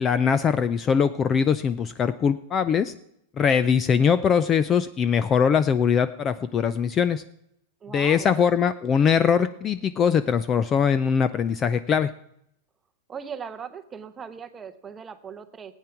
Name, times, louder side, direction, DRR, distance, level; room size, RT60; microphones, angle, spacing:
voice 1, 0.0-2.9 3.4-7.2 7.9-12.1, left 7 dB, 20° left, 14 dB, 0.4 m, -22 dB
voice 2, 7.8-8.3 13.1-15.7, right 6 dB, 15° right, 11 dB, 0.7 m, -39 dB
16.0 x 9.0 x 5.8 m, 0.74 s
supercardioid pair, 165°, 0 cm